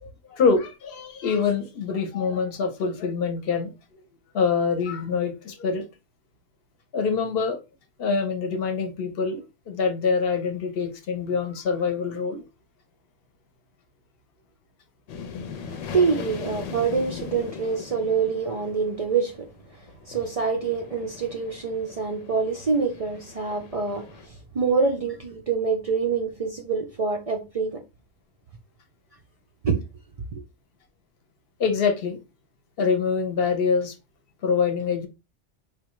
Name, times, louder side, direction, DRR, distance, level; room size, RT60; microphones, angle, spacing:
voice 1, 0.0-3.7 4.3-5.8 6.9-7.6 8.0-12.4 31.6-32.2 32.8-33.9 34.4-35.1, left 5 dB, 55° left, 0.9 m, -25 dB
sound 1, 15.1-24.3, left 6 dB, 85° left, 1.0 m, -40 dB
voice 2, 15.6-19.5 20.1-27.8 29.6-29.8 30.3-30.4, right 5 dB, 70° right, 0.3 m, -26 dB
4.0 x 2.3 x 3.0 m
omnidirectional pair, 1.3 m